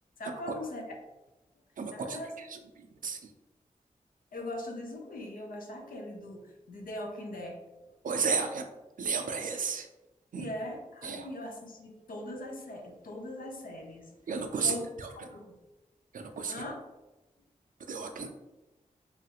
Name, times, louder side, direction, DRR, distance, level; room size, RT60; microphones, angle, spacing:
voice 1, 0.2-0.8 1.9-2.3 4.3-7.6 10.4-14.1 14.6-14.8 15.1-15.5 16.5-16.7 18.2-18.3, left 1 dB, 85° left, 2 dB, 0.6 m, -40 dB
voice 2, 1.8-3.3 8.0-8.7 9.0-9.9 10.3-10.5 11.0-11.3 14.3-15.4 16.1-16.6 17.9-18.3, right 5 dB, 75° right, 6 dB, 0.4 m, -33 dB
3.1 x 2.4 x 2.8 m, 1.0 s
wide cardioid pair, 80°, 14 cm